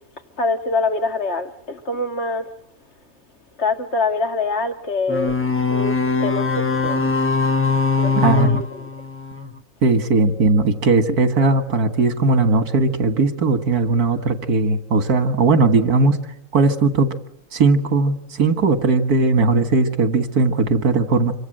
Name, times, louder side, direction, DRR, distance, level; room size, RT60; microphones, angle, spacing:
voice 1, 0.4-2.5 3.6-5.4 5.7-7.0 8.0-8.9, left 3 dB, 45° left, 2.0 m, -24 dB
sound 1, 5.1-9.6, left 4 dB, 10° left, 1.0 m, -21 dB
voice 2, 8.2-8.6 9.8-16.2 16.5-17.1 17.5-21.3, right 3 dB, 80° right, 2.1 m, -18 dB
27.0 x 24.0 x 7.7 m
omnidirectional pair, 1.6 m